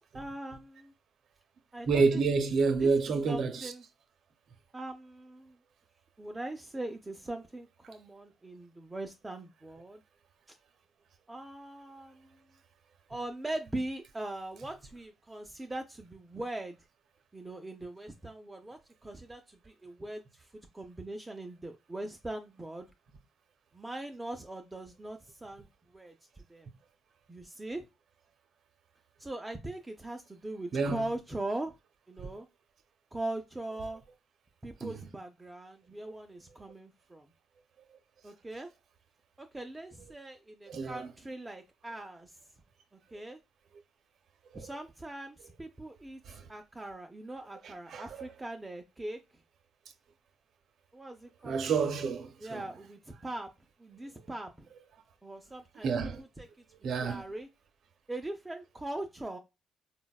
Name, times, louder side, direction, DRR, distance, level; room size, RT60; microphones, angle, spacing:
voice 1, 0.1-0.9 1.7-2.4 2.8-3.8 4.7-5.6 6.2-10.0 10.5-10.6 11.3-12.4 13.1-16.8 17.3-20.5 20.7-22.9 23.7-25.7 25.9-26.1 26.5-26.7 27.3-27.8 29.2-31.7 32.1-32.5 33.1-34.0 34.6-37.3 38.2-38.7 39.4-42.4 43.1-43.4 44.5-46.2 46.5-49.2 50.9-51.9 52.4-53.5 53.8-54.7 55.2-55.9 56.2-56.5 57.0-57.5 58.1-59.4, right 1 dB, 15° right, 0.3 m, -41 dB
voice 2, 1.9-3.7 30.7-31.0 34.8-35.0 40.7-41.1 44.5-44.6 46.3-46.5 47.6-48.3 51.4-52.6 55.8-56.2 56.8-57.2, right 4 dB, 65° right, 0.5 m, -29 dB
3.8 x 2.1 x 2.2 m
cardioid pair, 90°, 0 cm